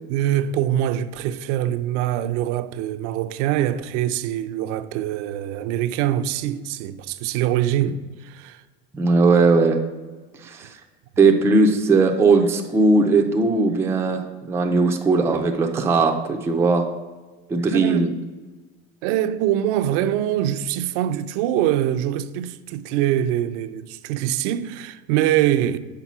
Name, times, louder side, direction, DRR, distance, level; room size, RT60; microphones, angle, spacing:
voice 1, 0.1-8.6 17.7-18.1 19.0-25.8, right 12 dB, 70° right, 0.5 m, -24 dB
voice 2, 8.9-9.8 10.4-10.7 11.2-16.9 17.5-18.1, right 3 dB, 5° right, 0.3 m, -18 dB
5.7 x 4.2 x 5.9 m
supercardioid pair, 140°, 37 cm